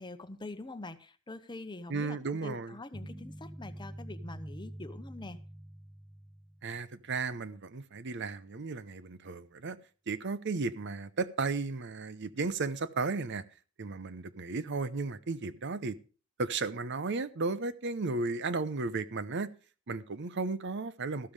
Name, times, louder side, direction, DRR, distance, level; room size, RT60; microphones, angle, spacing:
voice 1, 0.0-5.4, left 2 dB, 20° left, 0.8 m, -44 dB
voice 2, 1.9-2.7 6.6-9.8 10.1-13.4 13.8-16.0 16.4-19.5 19.9-21.3, right 3 dB, 60° right, 0.7 m, -34 dB
sound 1, 2.9-7.1, right 1 dB, 10° right, 0.5 m, -46 dB
13.5 x 12.5 x 3.3 m
head